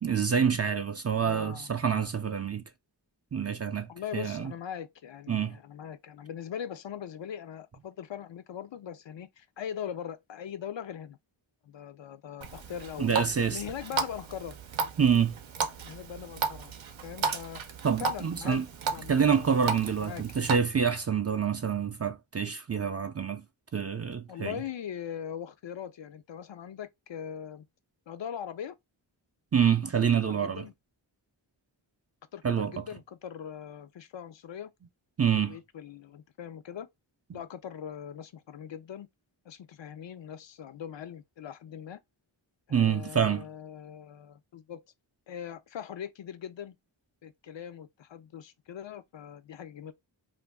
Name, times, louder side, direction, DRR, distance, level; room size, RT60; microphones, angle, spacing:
voice 1, 0.0-2.6 3.3-4.5 5.3-5.6 13.0-13.6 15.0-15.3 17.8-18.7 19.1-23.4 23.7-24.6 29.5-30.6 32.4-32.8 35.2-35.6 37.3-37.4 42.7-43.5, right 7 dB, 35° right, 0.4 m, -27 dB
voice 2, 1.2-1.7 3.9-11.2 11.6-13.1 13.5-14.6 15.0-15.3 15.8-16.7 17.0-17.6 18.0-18.7 18.9-19.6 20.0-20.2 24.3-27.6 28.1-28.8 30.0-30.7 32.3-34.7 35.2-36.9 37.3-39.1 39.5-42.0 42.7-44.8 45.3-46.8 47.2-49.9, left 9 dB, 70° left, 0.5 m, -41 dB
Water tap faucet, 12.4-20.6, right 5 dB, 80° right, 0.6 m, -35 dB
2.5 x 2.2 x 3.3 m
wide cardioid pair, 50°, 46 cm